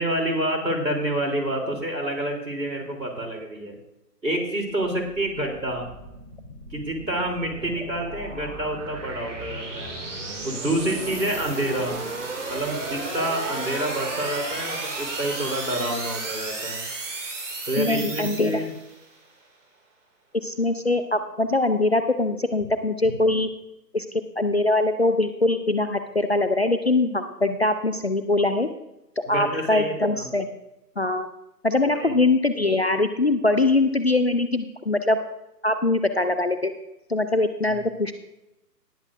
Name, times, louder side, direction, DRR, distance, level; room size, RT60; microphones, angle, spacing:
voice 1, 0.0-3.7 4.2-5.9 6.7-9.9 10.4-12.0 12.5-16.8 17.7-18.7 29.3-30.3 31.9-32.3 37.7-37.8, right 1 dB, 85° right, 1 dB, 3.5 m, -28 dB
sound 1, 4.5-19.0, right 3 dB, 45° right, 2.5 m, -34 dB
voice 2, 17.8-18.6 20.3-23.5 23.9-28.7 29.3-30.5 31.0-31.3 31.6-35.2 35.6-36.7 37.1-38.1, left 2 dB, 40° left, 9 dB, 0.5 m, -22 dB
19.0 x 8.1 x 2.6 m, 0.90 s
figure-of-eight pair, 145°, 50 cm